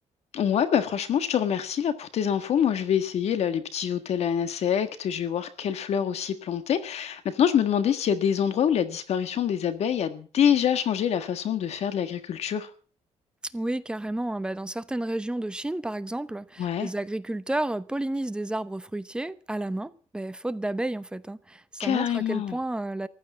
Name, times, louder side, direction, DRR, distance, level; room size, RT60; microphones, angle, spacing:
voice 1, 0.3-12.7 16.6-16.9 21.8-22.6, left 8 dB, 60° left, 1.6 m, -25 dB
voice 2, 13.4-23.1, right 1 dB, 5° right, 0.8 m, -31 dB
15.0 x 12.0 x 7.3 m
cardioid pair, 140°, 12 cm